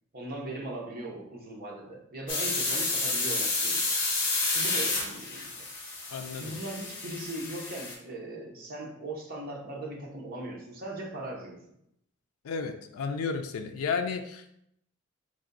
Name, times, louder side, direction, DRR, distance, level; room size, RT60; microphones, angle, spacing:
voice 1, 0.1-3.9 4.5-5.5 6.3-11.6, right 2 dB, 45° right, -1 dB, 0.8 m, -39 dB
sound 1, 2.3-7.9, left 3 dB, 60° left, 1.1 m, -30 dB
voice 2, 6.1-6.5 12.4-14.5, left 5 dB, 85° left, 6 dB, 0.4 m, -32 dB
3.3 x 2.6 x 3.9 m, 0.75 s
head